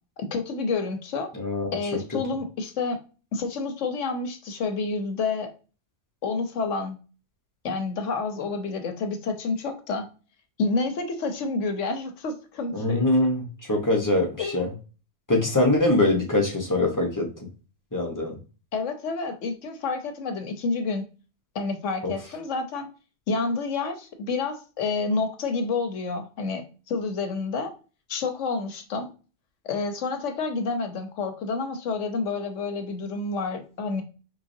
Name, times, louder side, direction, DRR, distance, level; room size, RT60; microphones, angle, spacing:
voice 1, 0.2-1.3 1.7-3.0 3.3-5.5 6.2-7.0 7.6-10.1 10.6-13.0 14.4-14.6 18.7-21.1 21.5-22.9 23.3-27.7 28.1-29.1 29.6-34.0, left 4 dB, 90° left, 6 dB, 1.2 m, -29 dB
voice 2, 1.3-1.7 12.7-14.7 15.3-17.3 17.9-18.3 22.0-22.1, left 2 dB, 15° left, 0 dB, 1.0 m, -23 dB
4.8 x 3.5 x 2.6 m, 0.34 s
omnidirectional pair, 1.2 m